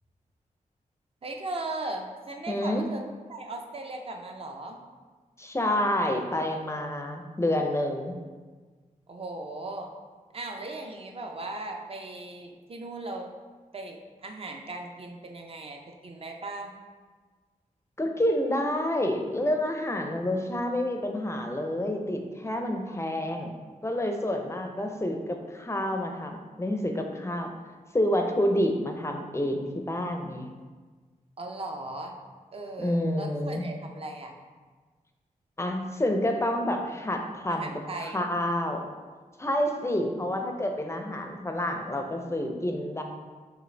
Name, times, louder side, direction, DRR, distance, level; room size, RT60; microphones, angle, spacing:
voice 1, 1.2-3.0 3.3-4.8 9.1-9.9 10.3-13.3 13.7-16.7 31.4-32.1 32.5-34.4 37.5-38.2, right 2 dB, 40° right, 2 dB, 0.5 m, -38 dB
voice 2, 2.5-2.8 5.4-8.1 18.0-23.5 23.8-27.5 27.9-30.5 32.8-33.6 35.6-37.7 38.1-38.8 39.4-43.0, left 1 dB, 20° left, 4 dB, 0.4 m, -28 dB
5.0 x 2.5 x 3.2 m, 1.4 s
wide cardioid pair, 75°, 14 cm